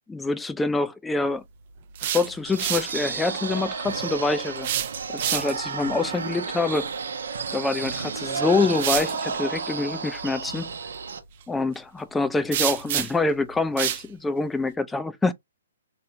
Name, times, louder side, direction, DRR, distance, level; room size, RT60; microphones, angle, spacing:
voice 1, 0.1-1.4 2.0-4.7 5.1-6.9 7.5-10.7 11.5-15.3, left 3 dB, 5° left, 0.4 m, -26 dB
sound 1, 1.8-3.0 4.6-5.7 7.8-7.9 8.7-9.2 12.5-13.3 13.8-14.1, right 11 dB, 45° right, 0.5 m, -28 dB
sound 2, 2.4-11.2, right 5 dB, 70° right, 0.8 m, -32 dB
3.9 x 2.9 x 2.6 m
hypercardioid pair, 130°, 0 cm